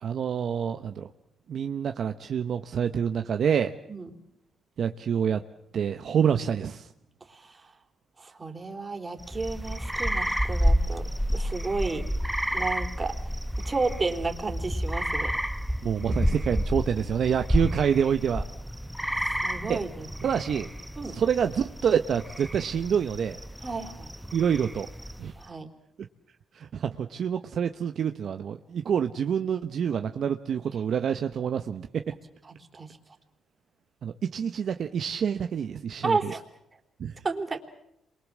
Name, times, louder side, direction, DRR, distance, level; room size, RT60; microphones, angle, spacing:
voice 1, 0.0-1.1 1.5-3.7 4.8-5.4 5.7-6.9 15.8-18.5 19.6-19.8 20.2-20.7 21.1-23.4 24.3-24.9 25.2-25.3 26.5-31.9 34.0-36.2 37.0-37.2, right 8 dB, 60° right, 8 dB, 1.0 m, -27 dB
voice 2, 7.3-7.7 8.2-12.0 12.5-13.2 13.7-15.3 19.1-20.3 21.0-21.2 23.6-24.1 25.4-25.7 32.5-33.0 36.0-36.4 37.2-37.6, right 3 dB, 25° right, 4 dB, 3.5 m, -32 dB
sound 1, 9.2-25.4, equal, ahead, 1.0 m, -30 dB
28.0 x 23.5 x 7.5 m, 0.79 s
cardioid pair, 90°, 0 cm